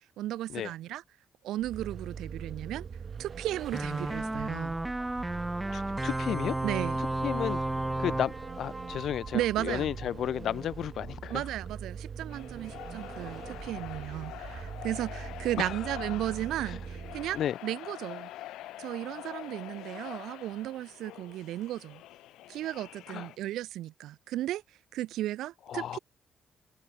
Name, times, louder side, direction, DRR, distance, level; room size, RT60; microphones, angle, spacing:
voice 1, 0.2-1.0 1.4-2.9 3.2-4.8 6.6-7.0 9.3-9.9 11.3-18.3 18.8-22.0 22.5-24.6 24.9-26.0, right 14 dB, 85° right, 1.2 m, -35 dB
Vehicle, 1.6-17.5, right 6 dB, 45° right, 0.7 m, -42 dB
sound 1, 3.7-9.9, right 1 dB, 10° right, 0.4 m, -33 dB
voice 2, 5.7-6.6 7.2-7.6 8.0-11.4 15.6-15.7 17.3-17.5 23.1-23.3 25.7-26.0, left 10 dB, 70° left, 0.4 m, -33 dB
sound 2, 12.3-23.4, left 15 dB, 90° left, 2.3 m, -45 dB
cardioid pair, 90°, 0 cm